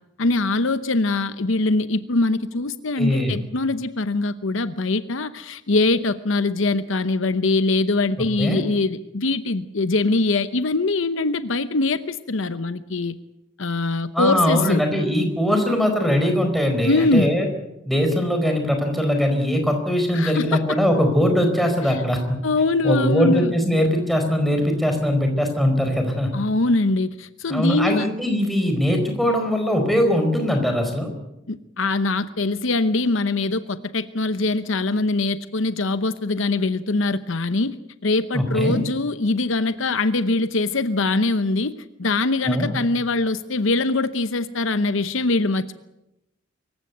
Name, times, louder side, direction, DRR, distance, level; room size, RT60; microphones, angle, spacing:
voice 1, 0.2-13.2 13.6-14.8 16.8-17.3 20.1-20.6 21.9-22.0 22.4-23.5 26.3-28.1 31.5-37.7 38.0-41.7 42.0-45.8, left 3 dB, 65° left, 12 dB, 0.9 m, -22 dB
voice 2, 3.0-3.4 8.4-8.6 14.1-17.5 17.9-22.4 22.8-26.3 27.5-31.1 38.3-38.8 42.5-42.7, equal, ahead, 4 dB, 4.5 m, -21 dB
25.0 x 15.5 x 9.3 m, 0.91 s
head